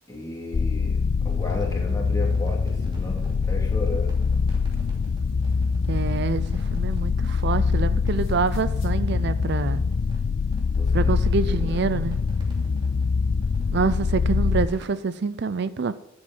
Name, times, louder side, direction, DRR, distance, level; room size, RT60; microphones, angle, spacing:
voice 1, 0.1-1.0 1.2-4.1 10.8-12.0, left 1 dB, 20° left, -1 dB, 2.7 m, -35 dB
sound 1, 0.5-14.7, left 5 dB, 55° left, 0.4 m, -24 dB
sound 2, 1.3-15.0, equal, 25° right, 2.8 m, -53 dB
sound 3, 4.4-7.7 8.0-9.0, left 1 dB, 80° left, 2.2 m, -51 dB
voice 2, 5.9-9.8 10.9-12.2 13.7-15.9, right 4 dB, 60° right, 14 dB, 0.5 m, -26 dB
11.5 x 7.9 x 5.5 m, 0.94 s
head